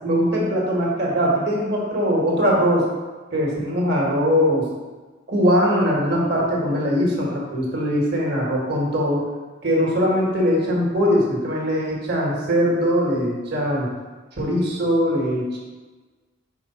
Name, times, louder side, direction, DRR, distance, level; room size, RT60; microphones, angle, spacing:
voice 1, 0.0-2.9 3.3-4.7 5.3-9.2 9.6-13.9 14.4-15.6, equal, 55° right, -3 dB, 1.5 m, -21 dB
4.8 x 4.7 x 4.4 m, 1.3 s
head